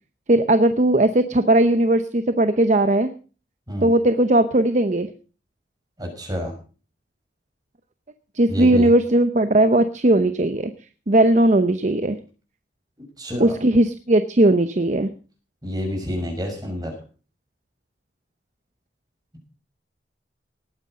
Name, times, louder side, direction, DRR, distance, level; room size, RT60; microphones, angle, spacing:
voice 1, 0.3-3.1 3.8-5.1 8.3-10.7 11.1-12.2 13.4-15.1, right 1 dB, 40° right, 10 dB, 0.8 m, -18 dB
voice 2, 6.0-6.5 8.5-8.9 13.2-13.5 15.6-16.9, equal, 20° right, 2 dB, 6.3 m, -28 dB
18.5 x 9.5 x 5.1 m, 0.38 s
head